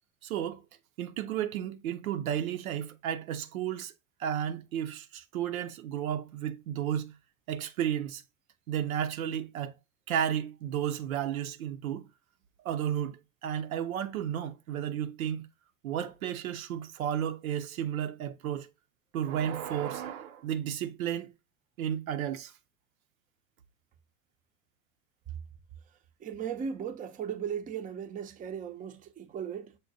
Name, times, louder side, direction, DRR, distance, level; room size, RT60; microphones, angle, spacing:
voice 1, 0.2-0.6 1.0-3.9 4.2-7.1 7.5-8.2 8.7-9.7 10.1-12.1 12.6-15.5 15.8-18.7 19.1-21.3 21.8-22.5, right 9 dB, 90° right, 0.6 m, -33 dB
voice 2, 26.2-29.8, right 7 dB, 20° right, 0.5 m, -37 dB
6.5 x 2.2 x 2.6 m
hypercardioid pair, 90°, 41 cm